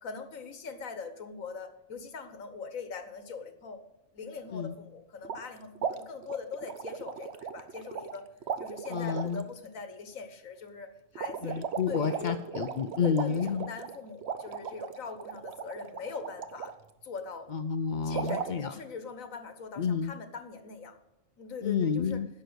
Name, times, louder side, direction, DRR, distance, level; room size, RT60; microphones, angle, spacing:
voice 1, 0.0-3.8 4.1-8.3 8.6-11.6 11.9-12.4 13.0-16.7 17.0-17.5 18.0-21.0 21.4-22.2, left 5 dB, 85° left, 9 dB, 1.7 m, -41 dB
sound 1, 5.2-5.5 5.8-8.2 8.4-9.4 11.2-16.7 18.1-18.5, right 7 dB, 60° right, 1.0 m, -37 dB
voice 2, 8.9-9.4 11.4-13.7 17.5-18.7 19.8-20.1 21.6-22.3, left 6 dB, 60° left, 10 dB, 0.5 m, -30 dB
10.5 x 6.8 x 8.0 m, 0.96 s
omnidirectional pair, 1.4 m